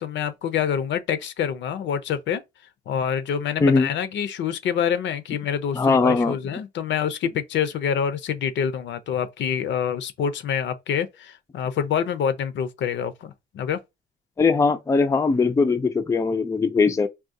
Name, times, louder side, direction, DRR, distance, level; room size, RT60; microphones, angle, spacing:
voice 1, 0.0-2.4 2.9-13.8, left 8 dB, 70° left, 0.5 m, -26 dB
voice 2, 5.7-6.4 14.4-17.1, left 4 dB, 15° left, 0.4 m, -20 dB
3.6 x 2.3 x 2.6 m
cardioid pair, 90°, 20 cm